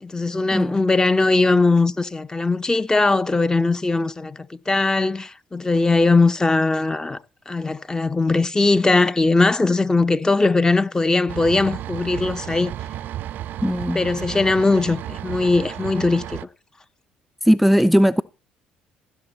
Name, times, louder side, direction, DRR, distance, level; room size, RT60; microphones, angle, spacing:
voice 1, 0.0-7.2 7.5-12.7 13.9-16.4, left 3 dB, 20° left, 0.8 m, -20 dB
sound 1, 11.3-16.4, right 12 dB, 60° right, 0.4 m, -33 dB
voice 2, 13.6-14.0 17.5-18.2, equal, ahead, 0.4 m, -17 dB
15.5 x 6.9 x 4.1 m
hypercardioid pair, 65°, 3 cm